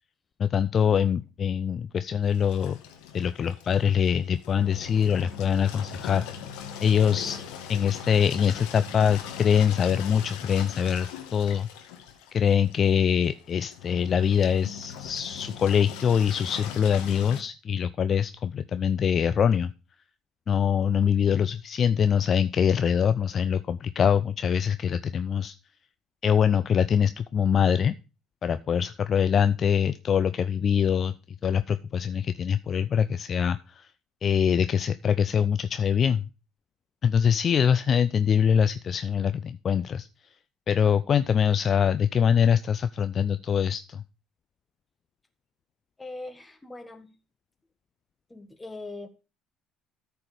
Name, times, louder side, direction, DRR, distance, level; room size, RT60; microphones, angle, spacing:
voice 1, 0.4-2.8 3.1-6.3 6.8-7.4 7.7-11.7 12.3-19.7 20.5-25.5 26.2-28.0 28.4-31.1 31.4-33.9 34.2-36.3 37.0-40.1 40.7-44.0, left 8 dB, 40° left, 12 dB, 0.5 m, -24 dB
Engine, 2.3-17.4, left 8 dB, 70° left, 1.6 m, -40 dB
voice 2, 46.0-47.1 48.3-49.1, left 2 dB, 15° left, 8 dB, 1.6 m, -41 dB
13.5 x 4.5 x 5.0 m, 0.31 s
figure-of-eight pair, 55°, 0 cm